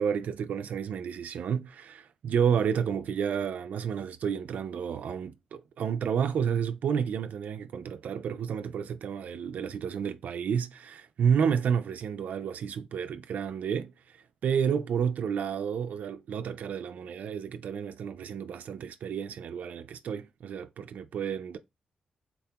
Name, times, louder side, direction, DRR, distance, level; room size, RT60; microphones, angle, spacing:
voice 1, 0.0-21.6, right 7 dB, 80° right, 0.3 m, -30 dB
4.0 x 2.1 x 2.8 m
cardioid pair, 80°, 3 cm